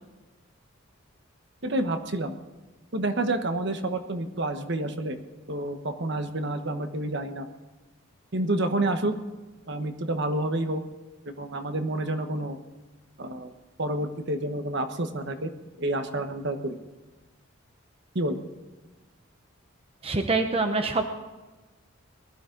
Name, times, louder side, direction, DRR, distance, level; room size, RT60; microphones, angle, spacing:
voice 1, 1.6-2.4 2.9-5.2 5.5-7.5 8.3-9.1 9.7-10.8 11.2-12.6 13.2-13.5 13.8-15.5 15.8-16.8 18.1-18.4, right 1 dB, 55° right, 7 dB, 1.2 m, -29 dB
voice 2, 20.0-21.0, right 3 dB, 30° right, 6 dB, 0.9 m, -25 dB
19.5 x 12.5 x 3.9 m, 1.2 s
head